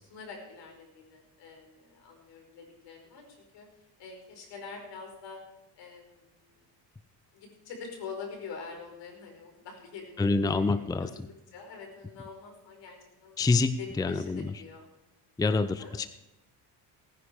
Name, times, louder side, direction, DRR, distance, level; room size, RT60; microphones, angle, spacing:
voice 1, 0.1-3.3 3.5-3.6 4.0-5.4 5.8-6.6 7.3-11.3 11.5-13.4 13.8-14.8 15.8-15.9, left 5 dB, 70° left, 2 dB, 5.3 m, -45 dB
voice 2, 10.2-11.1 13.4-14.5 15.4-16.1, left 3 dB, 10° left, 13 dB, 0.5 m, -26 dB
18.0 x 10.0 x 4.8 m, 0.92 s
cardioid pair, 95°, 45 cm